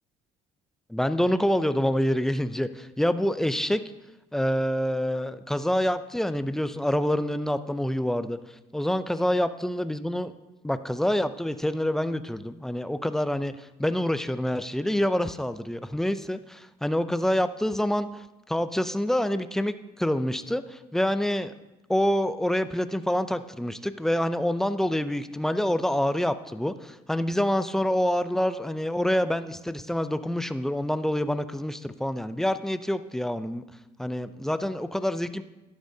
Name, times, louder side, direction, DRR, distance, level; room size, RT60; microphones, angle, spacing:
voice 1, 0.9-3.8 4.3-8.4 8.7-10.3 10.6-13.5 13.8-18.1 18.5-21.5 21.9-33.6 34.0-35.4, left 1 dB, ahead, 12 dB, 0.4 m, -26 dB
11.5 x 11.5 x 2.7 m, 1.0 s
cardioid pair, 110°, 17 cm